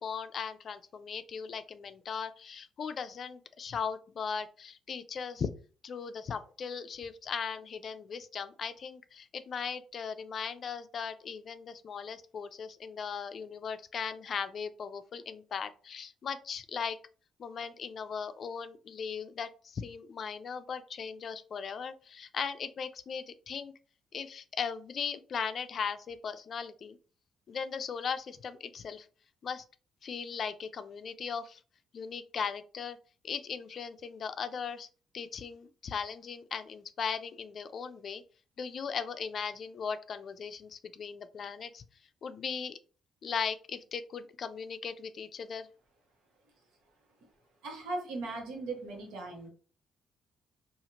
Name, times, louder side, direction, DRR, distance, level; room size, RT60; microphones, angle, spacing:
voice 1, 0.0-5.5 5.8-17.0 17.4-23.7 24.1-27.0 27.5-29.1 29.4-29.6 30.0-31.6 31.9-33.0 33.2-34.9 35.1-38.2 38.6-41.8 42.2-42.8 43.2-45.7, left 6 dB, 55° left, 11 dB, 0.3 m, -38 dB
voice 2, 47.6-49.5, right 2 dB, 90° right, 1 dB, 1.0 m, -38 dB
2.8 x 2.4 x 2.8 m, 0.38 s
cardioid pair, 90°, 0 cm